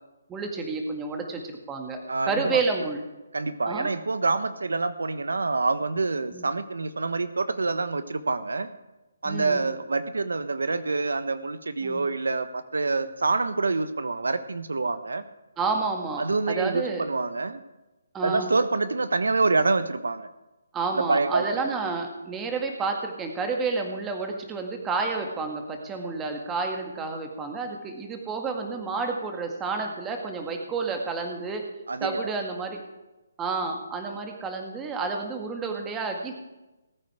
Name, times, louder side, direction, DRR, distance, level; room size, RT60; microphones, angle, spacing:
voice 1, 0.3-2.0 2.3-3.0 3.7-3.9 6.3-6.5 9.3-9.6 11.8-12.0 15.6-17.0 18.1-18.5 20.7-31.6 32.0-32.8 33.4-36.3, right 4 dB, 10° right, 3 dB, 1.9 m, -30 dB
voice 2, 2.1-2.6 3.3-8.7 9.2-15.2 16.2-17.6 18.2-20.3 20.9-21.7 31.9-32.3, right 3 dB, 90° right, 13 dB, 1.1 m, -26 dB
19.0 x 9.0 x 5.0 m, 1.0 s
hypercardioid pair, 160°, 0 cm